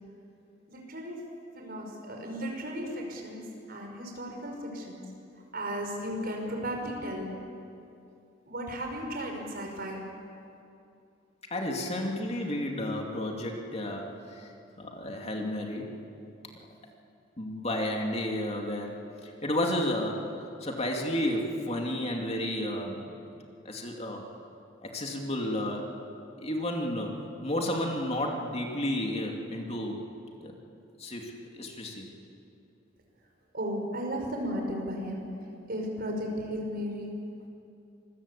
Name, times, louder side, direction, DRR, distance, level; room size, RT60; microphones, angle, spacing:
voice 1, 0.7-1.2 1.6-3.4 3.7-5.0 5.5-7.3 8.5-10.0 33.5-35.3 35.7-37.1, equal, 50° right, 2 dB, 5.3 m, -35 dB
voice 2, 11.5-14.5 14.8-16.0 17.4-23.1 23.6-24.2 24.8-26.0 26.4-30.0 30.4-30.6 31.0-32.1, left 1 dB, 35° left, 1 dB, 2.6 m, -32 dB
26.0 x 22.0 x 8.5 m, 2.6 s
head